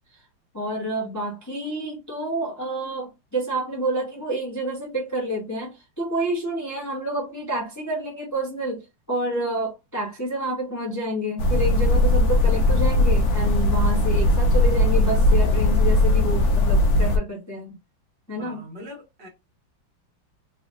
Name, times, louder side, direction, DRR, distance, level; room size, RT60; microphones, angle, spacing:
voice 1, 0.5-17.7 18.3-18.6, right 1 dB, 10° left, 0.9 m, -29 dB
sound 1, 11.4-17.2, left 1 dB, 60° left, 1.1 m, -19 dB
voice 2, 18.4-19.3, equal, 60° right, 1.8 m, -41 dB
3.9 x 2.9 x 2.6 m
omnidirectional pair, 2.2 m